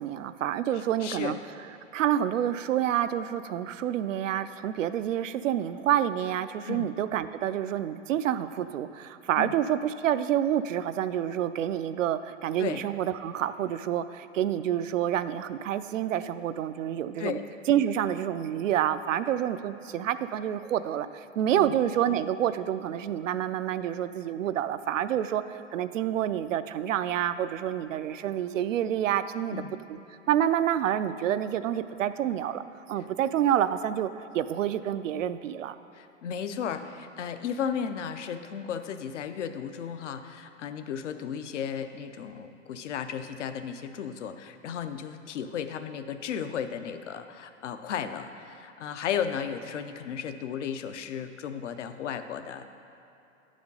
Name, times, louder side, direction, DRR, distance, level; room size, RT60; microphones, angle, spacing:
voice 1, 0.0-1.4 1.9-17.4 17.7-29.6 29.9-30.0 30.3-32.6 32.9-35.8, right 10 dB, 80° right, 12 dB, 0.5 m, -28 dB
voice 2, 1.0-1.3 6.7-6.9 9.4-9.5 12.6-12.8 17.2-17.4 21.6-21.7 29.5-29.8 35.9-52.7, left 8 dB, 70° left, 8 dB, 0.7 m, -34 dB
9.4 x 5.0 x 5.4 m, 3.0 s
hypercardioid pair, 115°, 37 cm